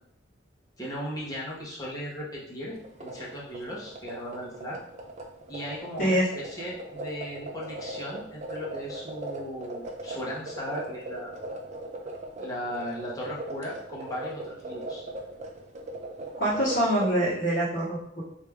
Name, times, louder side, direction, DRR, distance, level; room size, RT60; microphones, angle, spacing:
voice 1, 0.8-4.8 5.5-11.3 12.4-15.0, equal, 20° left, -6 dB, 1.1 m, -37 dB
sound 1, 2.8-17.1, right 1 dB, 40° right, 0.5 m, -39 dB
voice 2, 16.4-18.2, right 1 dB, 50° left, -10 dB, 1.2 m, -25 dB
3.4 x 2.7 x 3.5 m, 0.75 s
head